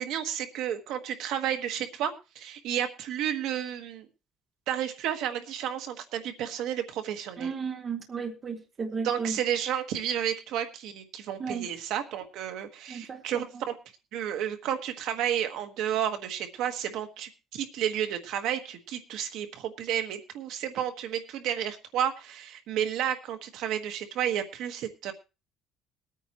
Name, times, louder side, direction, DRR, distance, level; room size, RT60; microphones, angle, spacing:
voice 1, 0.0-4.1 4.7-7.5 8.9-13.7 14.1-25.1, right 10 dB, 65° right, 1.4 m, -31 dB
voice 2, 7.4-9.4 11.4-11.7 12.9-13.5, right 5 dB, 25° right, 1.0 m, -34 dB
21.5 x 9.1 x 3.0 m
cardioid pair, 180°, 0 cm